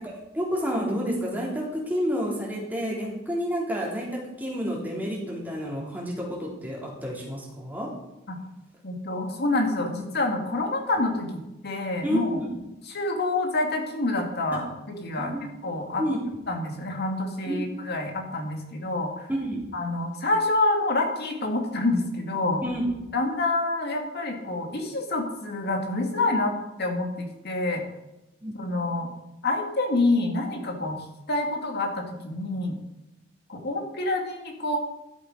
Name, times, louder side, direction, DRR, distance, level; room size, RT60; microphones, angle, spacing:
voice 1, 0.0-7.9 12.0-12.5 15.2-15.4 16.0-16.2 17.5-17.6 19.3-19.6 22.6-22.9 28.4-28.5, equal, 10° right, -4 dB, 3.5 m, -29 dB
voice 2, 8.8-12.4 12.9-15.3 15.6-16.0 16.5-19.3 19.7-22.6 23.1-26.5 26.8-27.8 28.5-29.1 29.4-32.7 33.5-34.8, left 2 dB, 55° left, 3 dB, 2.2 m, -27 dB
12.5 x 7.8 x 5.0 m, 0.95 s
head